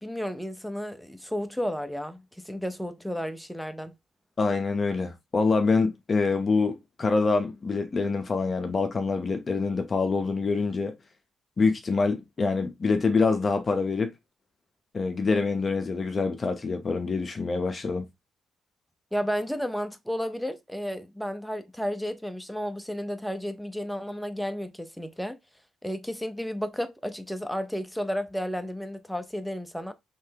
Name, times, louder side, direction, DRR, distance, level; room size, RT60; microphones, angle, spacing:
voice 1, 0.0-3.9 19.1-25.4 25.8-29.9, equal, ahead, 0.7 m, -32 dB
voice 2, 4.4-10.9 11.6-14.1 14.9-18.1, left 4 dB, 30° left, 0.9 m, -25 dB
5.7 x 3.3 x 2.9 m
cardioid pair, 120°, 0 cm